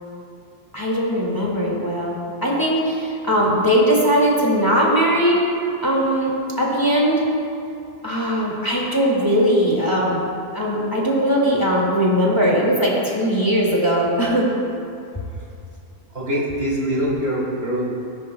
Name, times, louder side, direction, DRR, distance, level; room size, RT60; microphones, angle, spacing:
voice 1, 0.7-5.4 5.8-7.2 8.0-10.2 10.5-14.5, equal, 20° left, -5 dB, 1.9 m, -19 dB
voice 2, 16.1-17.9, equal, 65° right, -4 dB, 2.4 m, -23 dB
18.0 x 11.0 x 2.2 m, 2.6 s
omnidirectional pair, 1.1 m